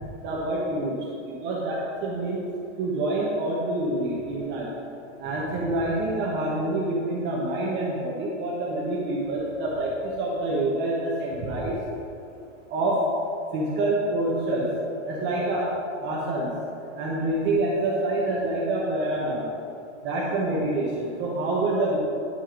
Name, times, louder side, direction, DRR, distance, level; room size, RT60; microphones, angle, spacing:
voice 1, 0.2-0.9 1.4-1.7 2.0-2.4 2.8-4.7 5.2-11.8 12.7-13.0 13.5-14.6 14.9-15.7 16.0-16.5 17.0-19.4 20.0-22.0, right 2 dB, 30° right, -5 dB, 1.1 m, -26 dB
9.9 x 4.5 x 5.1 m, 2.7 s
supercardioid pair, 150°, 38 cm